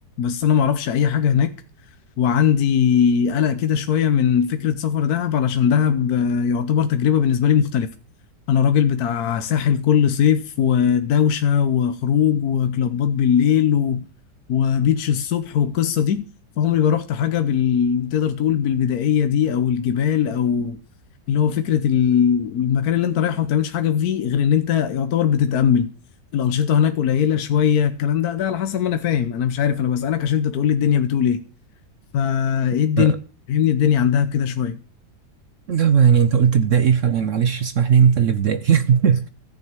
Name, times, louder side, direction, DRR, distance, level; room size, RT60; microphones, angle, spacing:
voice 1, 0.2-1.5 2.2-7.9 8.5-14.1 14.5-16.2 16.6-20.8 21.3-25.9 26.3-31.4 32.1-33.1 33.5-34.8, left 8 dB, 65° left, 1.3 m, -20 dB
voice 2, 35.7-39.3, right 7 dB, 55° right, 1.0 m, -17 dB
14.5 x 6.3 x 8.9 m
omnidirectional pair, 1.8 m